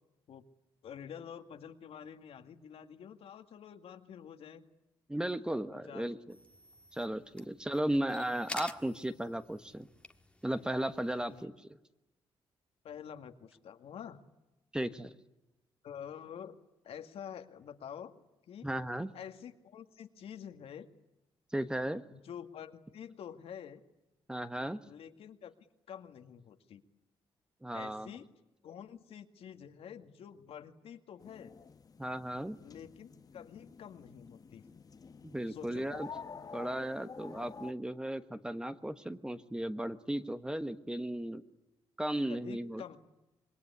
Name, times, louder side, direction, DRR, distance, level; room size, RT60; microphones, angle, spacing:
voice 1, 0.8-4.6 5.7-6.1 7.8-8.0 11.1-11.4 12.8-14.2 15.8-16.6 16.8-18.1 18.5-18.7 19.1-20.9 22.1-23.8 24.9-25.5 25.9-26.8 27.7-28.3 28.6-31.5 32.6-34.7 35.5-35.8 42.3-43.0, left 8 dB, 75° left, 7 dB, 2.1 m, -48 dB
voice 2, 5.1-6.4 6.9-9.9 10.4-11.8 14.7-15.1 18.6-19.1 21.5-22.0 24.3-24.8 27.6-28.1 32.0-32.6 35.2-36.1 36.5-41.4 42.0-43.0, right 1 dB, 10° right, 10 dB, 1.2 m, -35 dB
sound 1, 6.3-11.4, left 2 dB, 10° left, 1.6 m, -49 dB
sound 2, 31.2-37.7, left 5 dB, 40° left, 1.2 m, -49 dB
26.5 x 21.5 x 9.8 m, 0.97 s
cardioid pair, 110°, 10 cm